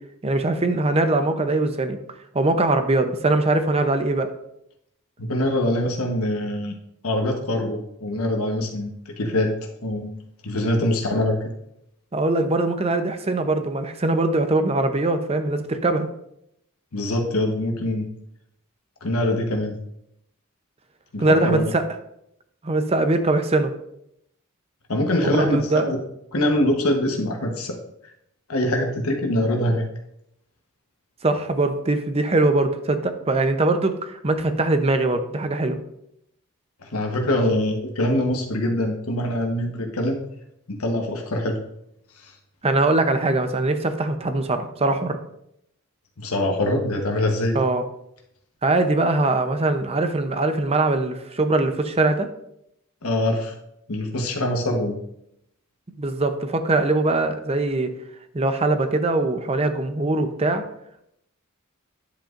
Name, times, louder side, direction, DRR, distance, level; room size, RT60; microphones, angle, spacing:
voice 1, 0.2-2.0 2.3-4.3 12.1-16.1 21.2-21.9 22.6-23.7 25.2-25.8 31.2-35.8 42.6-45.2 47.5-47.8 48.6-52.3 56.0-57.9 58.3-60.6, right 2 dB, 30° right, 8 dB, 0.7 m, -22 dB
voice 2, 5.2-6.7 7.0-9.5 9.8-10.1 10.4-11.4 16.9-18.1 19.0-19.7 21.1-21.7 24.9-26.0 26.3-27.8 28.5-29.8 36.8-40.2 40.7-41.6 42.2-42.3 46.2-47.6 53.0-53.5 53.9-54.9, left 1 dB, 80° left, 2 dB, 1.2 m, -23 dB
10.0 x 7.9 x 2.5 m, 0.77 s
head